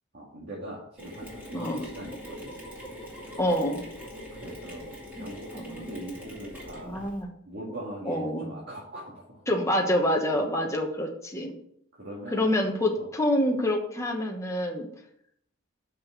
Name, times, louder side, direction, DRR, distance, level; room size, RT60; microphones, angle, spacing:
voice 1, 0.1-2.5 4.3-7.0 7.4-9.4 10.3-10.5 11.9-12.5 13.0-13.1, right 1 dB, 50° right, -5 dB, 2.2 m, -41 dB
Mechanisms, 1.0-7.2, equal, 10° right, 2.7 m, -43 dB
voice 2, 3.4-3.8 5.2-5.3 5.5-5.9 6.8-7.3 8.1-8.5 9.5-11.6 12.3-14.9, left 1 dB, 15° left, 0 dB, 1.1 m, -27 dB
6.4 x 6.1 x 7.0 m, 0.70 s
head